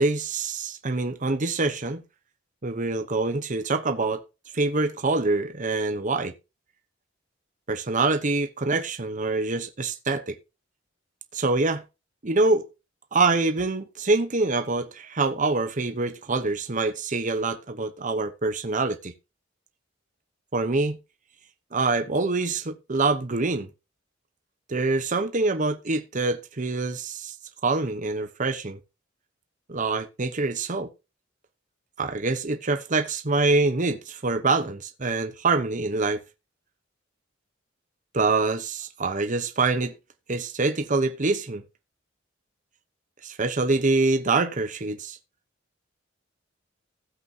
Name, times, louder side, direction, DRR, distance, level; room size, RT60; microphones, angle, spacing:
voice 1, 0.0-2.0 2.6-4.2 4.5-6.3 7.7-10.4 11.3-11.8 12.2-12.6 13.1-19.1 20.5-21.0 21.7-23.7 24.7-27.3 27.6-28.8 29.7-30.9 32.0-36.2 38.1-39.9 40.3-41.6 43.2-45.2, right 3 dB, 40° right, 1.0 m, -25 dB
16.0 x 8.2 x 2.8 m
head